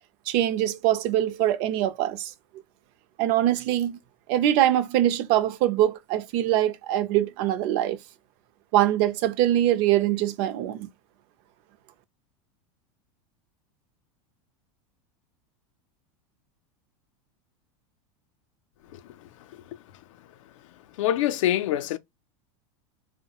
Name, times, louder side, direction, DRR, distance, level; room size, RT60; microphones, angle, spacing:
voice 1, 0.3-2.3 3.2-4.0 4.3-8.0 8.7-10.9, right 12 dB, 50° right, 0.4 m, -23 dB
voice 2, 21.0-22.0, left 13 dB, 85° left, 0.4 m, -24 dB
3.0 x 2.1 x 2.8 m
supercardioid pair, 140°, 16 cm